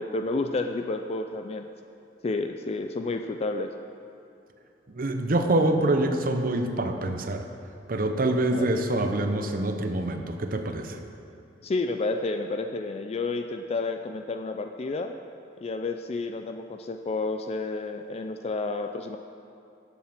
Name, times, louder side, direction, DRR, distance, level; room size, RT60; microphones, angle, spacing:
voice 1, 0.0-1.7 2.2-3.7 8.5-8.7 11.6-15.1 15.6-19.2, left 3 dB, 35° left, 7 dB, 0.3 m, -30 dB
voice 2, 4.9-7.4 7.9-11.0, right 1 dB, 55° right, 6 dB, 0.8 m, -25 dB
10.5 x 7.3 x 5.9 m, 2.7 s
head